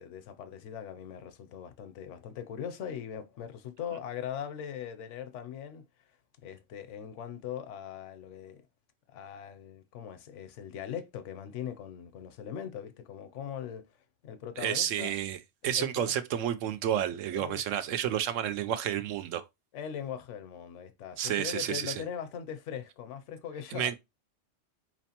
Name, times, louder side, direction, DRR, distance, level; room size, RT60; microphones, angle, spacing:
voice 1, 0.0-6.1 6.4-8.6 9.1-13.9 14.2-15.1 15.8-16.1 17.3-17.6 19.7-24.0, left 8 dB, 75° left, 0.9 m, -40 dB
voice 2, 14.6-19.4 21.2-22.0 23.7-24.0, right 10 dB, 85° right, 1.0 m, -31 dB
4.3 x 3.0 x 2.8 m
omnidirectional pair, 1.3 m